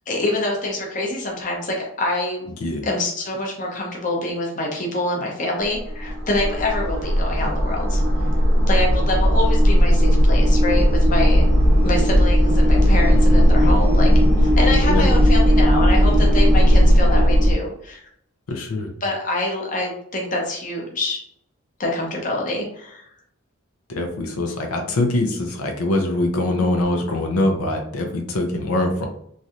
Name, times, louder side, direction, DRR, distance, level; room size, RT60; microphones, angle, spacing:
voice 1, 0.1-8.0 8.7-11.5 11.8-14.1 14.4-18.1 19.0-21.2 21.8-23.0, left 2 dB, 35° left, -1 dB, 0.7 m, -26 dB
sound 1, 5.6-17.5, equal, 85° right, 0.8 m, -16 dB
voice 2, 13.1-13.4 14.9-15.2 18.5-18.9 23.9-29.1, left 2 dB, 85° left, 3 dB, 0.6 m, -23 dB
3.1 x 2.7 x 2.5 m, 0.70 s
head